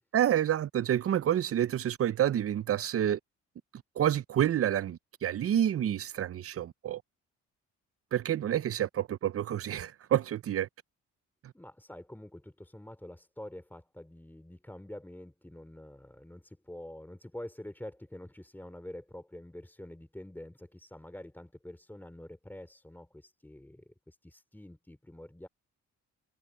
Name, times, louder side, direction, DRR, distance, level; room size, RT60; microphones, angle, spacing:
voice 1, 0.1-3.2 4.0-7.0 8.1-10.7 11.4-11.5, right 10 dB, 50° right, 0.7 m, -28 dB
voice 2, 11.5-25.5, left 1 dB, 5° left, 2.9 m, -47 dB
cardioid pair, 90°, 30 cm